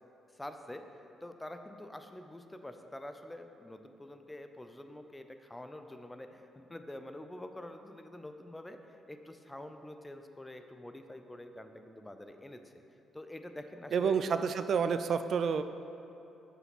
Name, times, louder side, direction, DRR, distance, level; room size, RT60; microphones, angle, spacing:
voice 1, 0.3-12.7 13.1-14.4, left 1 dB, 10° left, 7 dB, 0.5 m, -47 dB
voice 2, 13.9-15.6, right 6 dB, 60° right, 10 dB, 0.3 m, -29 dB
6.4 x 4.9 x 5.9 m, 2.9 s
cardioid pair, 90°, 0 cm